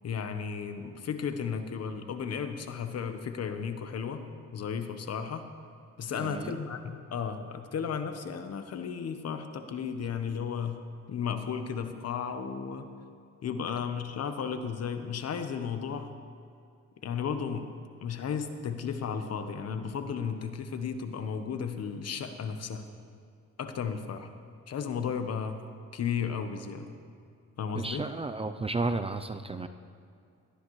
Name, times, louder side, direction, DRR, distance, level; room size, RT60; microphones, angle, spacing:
voice 1, 0.0-4.2 4.5-5.5 6.0-12.9 13.4-16.1 17.0-17.7 18.0-22.9 23.6-24.3 24.7-25.6 25.9-26.9 27.6-28.0, left 6 dB, 55° left, 8 dB, 1.1 m, -34 dB
voice 2, 6.1-6.5 27.8-29.7, right 3 dB, 20° right, 9 dB, 0.5 m, -32 dB
18.0 x 12.5 x 3.2 m, 2.4 s
cardioid pair, 90°, 30 cm